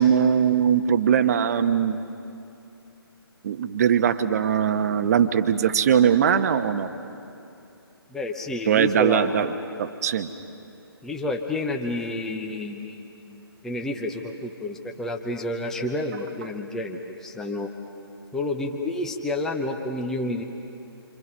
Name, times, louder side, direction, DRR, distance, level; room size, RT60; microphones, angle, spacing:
voice 1, 0.0-2.0 3.4-6.9 8.7-9.5 9.8-10.3, right 8 dB, 40° right, 10 dB, 1.0 m, -21 dB
voice 2, 8.1-9.4 11.0-17.7 18.3-20.4, left 2 dB, 5° left, 2 dB, 0.8 m, -30 dB
28.0 x 25.0 x 5.5 m, 2.7 s
figure-of-eight pair, 145°, 13 cm